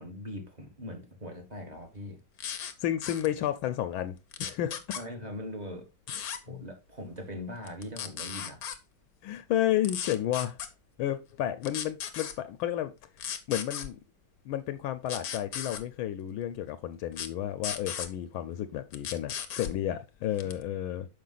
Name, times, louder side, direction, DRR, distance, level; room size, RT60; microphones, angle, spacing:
voice 1, 0.0-2.2 4.9-5.9 6.5-8.6, equal, 25° right, 1.3 m, -41 dB
sound 1, 2.4-2.7 3.0-3.3 4.3-5.0 6.1-6.4 7.7-8.8 9.8-10.7 11.6-12.3 13.2-13.9 15.1-15.8 17.1-17.3 17.6-18.1 18.9-19.7 20.4-20.6, left 8 dB, 60° left, 1.0 m, -36 dB
voice 2, 2.8-5.0 6.1-6.6 9.2-10.6 11.0-12.9 13.5-14.0 14.4-21.1, left 12 dB, 80° left, 1.4 m, -32 dB
6.6 x 5.1 x 3.9 m
omnidirectional pair, 2.3 m